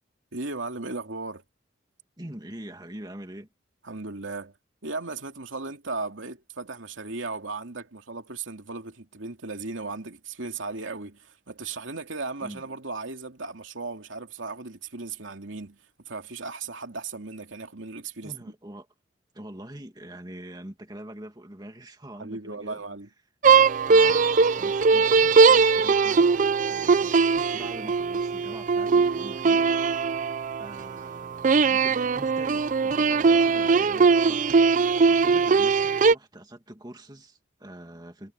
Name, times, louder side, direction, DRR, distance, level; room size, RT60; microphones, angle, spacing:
voice 1, 0.3-1.4 3.8-4.5 4.8-18.5 22.2-23.1, right 3 dB, 85° right, 2.6 m, -36 dB
voice 2, 2.2-3.5 12.4-12.6 18.2-18.9 19.3-22.8 23.9-26.3 26.7-27.1 27.5-29.7 30.6-34.5 35.0-38.3, right 1 dB, 20° right, 2.2 m, -44 dB
sound 1, 23.4-30.8 31.4-36.1, right 5 dB, 40° right, 0.4 m, -20 dB
head